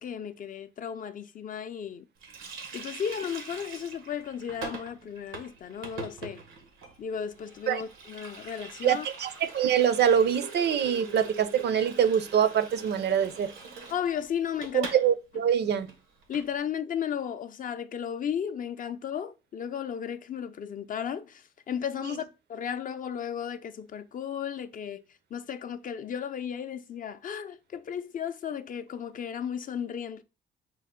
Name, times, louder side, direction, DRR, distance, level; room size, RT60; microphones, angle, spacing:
voice 1, 0.0-2.1 2.7-6.4 7.0-9.1 13.9-14.9 16.3-25.0 25.3-30.2, left 8 dB, 45° left, 0.4 m, -34 dB
Water tap faucet, 2.2-15.1 15.3-15.5 15.8-16.5, right 4 dB, 90° right, 0.9 m, -43 dB
voice 2, 8.8-13.5 14.7-15.9, right 8 dB, 60° right, 0.5 m, -24 dB
4.5 x 2.1 x 3.6 m
cardioid pair, 90°, 20 cm